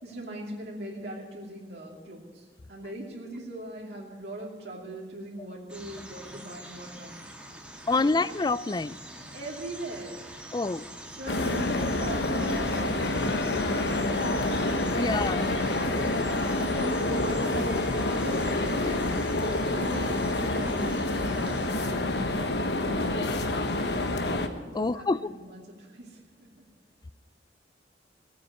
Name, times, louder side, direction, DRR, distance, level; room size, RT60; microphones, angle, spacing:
voice 1, 0.0-7.2 8.0-8.1 9.3-10.2 11.0-17.7 18.1-23.7 24.7-26.7, right 1 dB, 70° right, -3 dB, 2.8 m, -41 dB
sound 1, 5.7-21.9, right 1 dB, 5° right, 2.1 m, -44 dB
voice 2, 7.9-9.0 10.5-10.8 14.9-15.5 24.8-25.2, left 3 dB, 25° left, 17 dB, 0.4 m, -26 dB
sound 2, 11.3-24.5, left 2 dB, 65° left, 1.3 m, -27 dB
17.5 x 9.3 x 8.4 m, 1.5 s
head